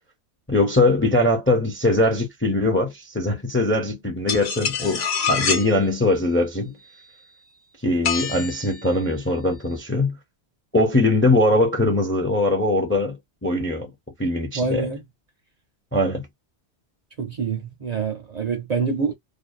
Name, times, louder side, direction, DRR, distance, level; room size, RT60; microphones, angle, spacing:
voice 1, 0.5-6.8 7.8-10.2 10.7-13.9 14.2-14.9 15.9-16.3, left 2 dB, 15° left, 0.5 m, -21 dB
sound 1, 4.3-5.7 8.0-8.8, left 6 dB, 70° left, 1.0 m, -25 dB
voice 2, 14.5-15.0 17.2-19.1, right 5 dB, 45° right, 0.6 m, -26 dB
2.6 x 2.1 x 2.4 m
omnidirectional pair, 1.1 m